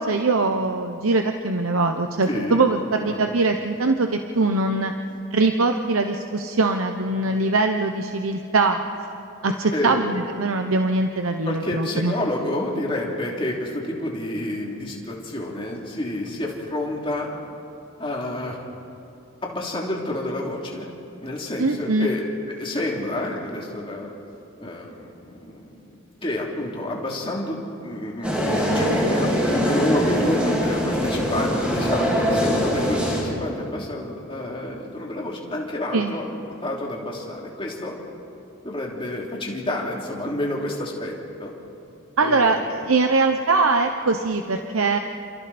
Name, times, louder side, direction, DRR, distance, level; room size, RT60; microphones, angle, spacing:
voice 1, 0.0-4.9 5.3-8.8 9.4-12.1 21.6-22.1 35.9-36.1 42.2-45.0, right 3 dB, 80° right, 5 dB, 0.9 m, -22 dB
voice 2, 2.2-2.7 3.0-3.3 9.4-10.1 11.4-17.3 18.0-18.6 19.4-20.9 21.2-22.2 22.5-24.1 24.6-25.8 26.2-37.9 38.6-41.1 41.4-41.5 42.2-42.7, left 1 dB, 25° left, -2 dB, 3.2 m, -29 dB
sound 1, 28.2-33.2, equal, 5° right, 4.2 m, -22 dB
29.0 x 28.0 x 4.3 m, 2.8 s
head